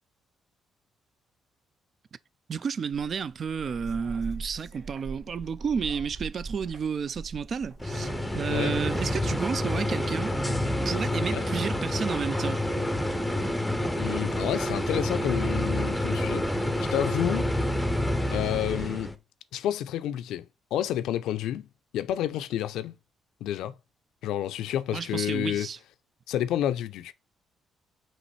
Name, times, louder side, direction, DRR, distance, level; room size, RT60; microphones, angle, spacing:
voice 1, 2.5-10.4 10.9-12.6 24.9-25.8, right 6 dB, 50° right, 0.3 m, -31 dB
sound 1, 2.9-8.9, right 4 dB, 65° right, 1.8 m, -42 dB
sound 2, 7.8-19.1, left 1 dB, 5° left, 0.6 m, -28 dB
voice 2, 8.5-8.8 11.3-11.5 14.0-16.5 16.8-17.5 18.3-19.1 19.5-21.7 21.9-22.9 23.4-23.7 24.2-25.7 26.3-27.1, left 11 dB, 85° left, 0.4 m, -30 dB
5.3 x 3.0 x 3.2 m
cardioid pair, 90°, 0 cm